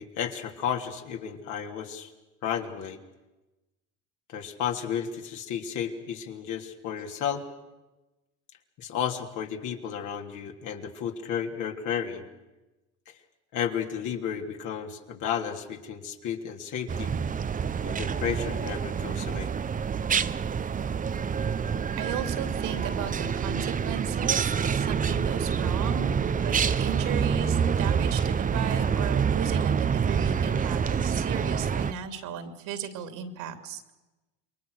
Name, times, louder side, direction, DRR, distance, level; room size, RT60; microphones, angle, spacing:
voice 1, 0.0-2.1 2.4-3.0 4.3-7.4 8.8-12.3 13.1-13.2 13.5-17.1 17.8-19.5, left 8 dB, 60° left, 3 dB, 3.2 m, -33 dB
sound 1, 16.9-31.9, right 7 dB, 25° right, 0.8 m, -27 dB
voice 2, 22.0-26.1 26.4-33.9, right 8 dB, 65° right, 8 dB, 3.0 m, -36 dB
27.5 x 22.5 x 6.5 m, 1.1 s
supercardioid pair, 95°, 34 cm